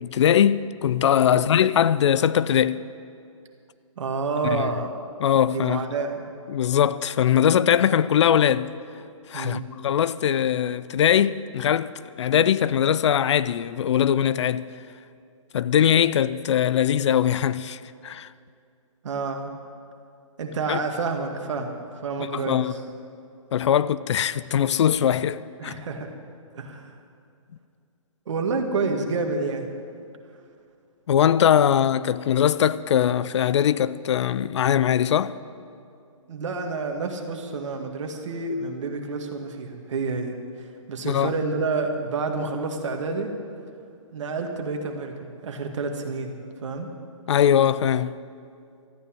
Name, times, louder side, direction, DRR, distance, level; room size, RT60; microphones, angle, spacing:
voice 1, 0.0-2.8 4.5-4.7 5.2-5.8 6.5-8.7 9.3-14.6 15.5-18.3 20.7-20.8 22.3-22.7 23.5-25.7 31.1-35.3 41.0-41.3 47.3-48.2, left 9 dB, 60° left, 0.5 m, -21 dB
voice 2, 4.0-4.9 5.5-6.3 9.3-9.7 19.0-19.5 20.4-22.8 25.6-26.1 26.5-26.9 28.3-29.7 36.3-40.4 40.9-43.3 44.1-46.9, right 4 dB, 60° right, 2.1 m, -29 dB
14.0 x 9.3 x 9.0 m
hypercardioid pair, 135°, 17 cm